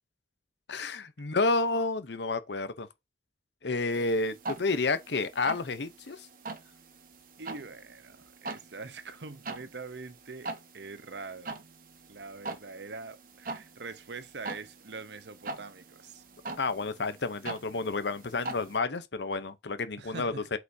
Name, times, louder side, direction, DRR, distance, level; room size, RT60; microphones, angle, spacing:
voice 1, 0.7-2.9 3.6-6.3 16.6-20.6, left 3 dB, 80° left, 0.8 m, -30 dB
sound 1, 3.9-18.8, right 3 dB, 50° right, 1.0 m, -43 dB
voice 2, 7.4-10.5 10.7-11.5 12.1-16.2 20.0-20.4, right 4 dB, 80° right, 0.9 m, -43 dB
8.1 x 5.0 x 2.8 m
head